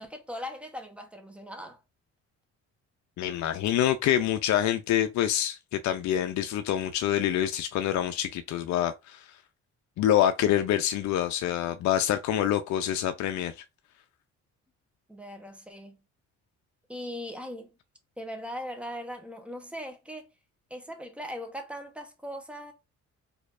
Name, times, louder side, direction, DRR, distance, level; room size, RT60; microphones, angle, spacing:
voice 1, 0.0-1.8 15.1-16.0 16.9-17.7 18.2-20.3 20.7-22.7, equal, 5° right, 0.9 m, -39 dB
voice 2, 3.2-9.3 10.0-13.5, left 11 dB, 70° left, 0.5 m, -26 dB
4.3 x 2.7 x 2.4 m
cardioid pair, 90°, 30 cm